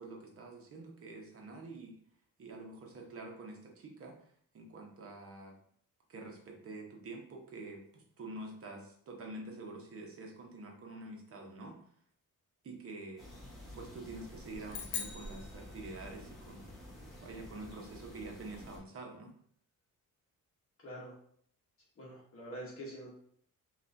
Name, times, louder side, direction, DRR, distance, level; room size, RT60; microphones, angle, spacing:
voice 1, 0.0-2.0 2.4-5.6 6.1-11.8 12.6-13.3 13.7-16.7 17.2-19.3, right 2 dB, 45° right, 1 dB, 0.9 m, -47 dB
sound 1, 13.2-18.8, equal, ahead, 1.1 m, -50 dB
sound 2, 14.7-16.3, left 6 dB, 60° left, 0.7 m, -42 dB
voice 2, 20.8-21.1 22.0-23.1, right 1 dB, 40° left, -4 dB, 1.0 m, -45 dB
5.4 x 2.5 x 2.6 m, 0.63 s
wide cardioid pair, 170°, 33 cm